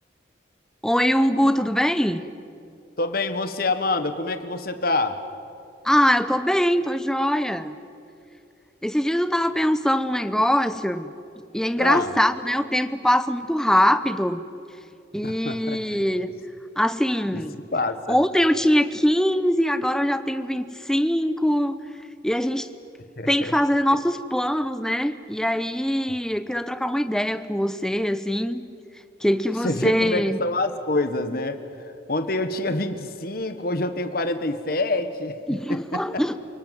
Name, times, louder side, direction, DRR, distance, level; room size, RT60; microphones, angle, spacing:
voice 1, 0.8-2.2 5.8-7.7 8.8-11.1 11.5-14.4 15.1-16.3 16.8-17.5 18.1-21.8 22.2-22.7 23.3-28.6 29.2-30.4 35.5-36.4, equal, 5° left, 11 dB, 0.8 m, -22 dB
voice 2, 3.0-5.2 11.8-12.1 15.2-16.0 17.3-17.4 17.7-18.2 23.2-23.5 29.6-31.6 32.1-36.4, left 2 dB, 50° left, 9 dB, 1.5 m, -26 dB
28.5 x 18.5 x 9.4 m, 2.6 s
head